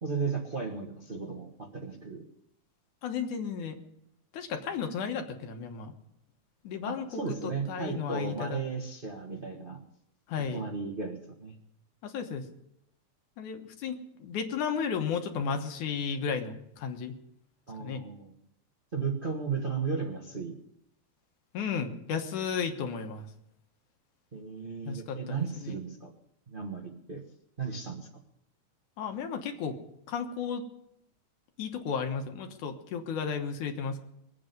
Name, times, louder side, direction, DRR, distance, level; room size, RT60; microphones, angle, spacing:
voice 1, 0.0-2.2 6.9-9.8 10.5-11.6 17.7-18.3 18.9-20.5 24.3-26.1 26.5-27.2 27.6-28.1, right 5 dB, 90° right, -1 dB, 0.4 m, -35 dB
voice 2, 3.0-3.8 4.3-5.9 6.6-7.3 7.7-8.6 10.3-10.6 12.0-12.5 13.4-17.1 17.8-18.0 21.5-23.3 24.8-25.7 29.0-29.8 30.1-30.6 31.6-34.0, left 6 dB, 80° left, 5 dB, 2.8 m, -34 dB
23.0 x 8.6 x 5.2 m, 0.77 s
omnidirectional pair, 3.4 m